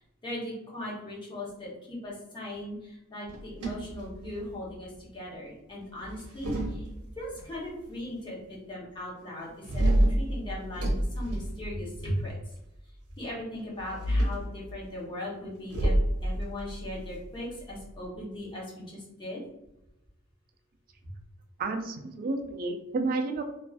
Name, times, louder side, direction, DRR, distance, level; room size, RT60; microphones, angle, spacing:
voice 1, 0.0-6.9 7.2-12.4 13.2-16.0 16.2-19.4, left 1 dB, 20° left, -5 dB, 0.8 m, -38 dB
sound 1, 3.3-4.7 6.0-7.4 9.6-12.2 13.8-14.5 15.7-18.1, right 1 dB, 85° right, 0.6 m, -28 dB
voice 2, 21.6-23.4, right 3 dB, 40° right, 6 dB, 0.3 m, -31 dB
2.3 x 2.3 x 2.3 m, 0.90 s
head